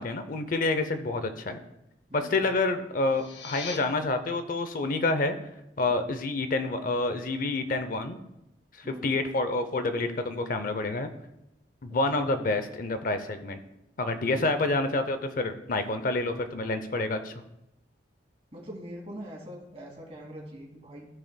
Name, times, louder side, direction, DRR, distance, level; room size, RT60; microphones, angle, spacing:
voice 1, 0.0-1.6 2.1-5.4 5.8-8.2 8.8-11.1 11.8-13.6 14.0-17.3, left 2 dB, 50° left, 9 dB, 0.6 m, -28 dB
sound 1, 3.0-3.8, left 5 dB, 85° left, 0.8 m, -39 dB
voice 2, 8.8-9.2 11.9-12.3 14.3-14.4 18.5-21.1, equal, 35° right, -2 dB, 2.3 m, -43 dB
15.5 x 5.3 x 2.2 m, 0.86 s
head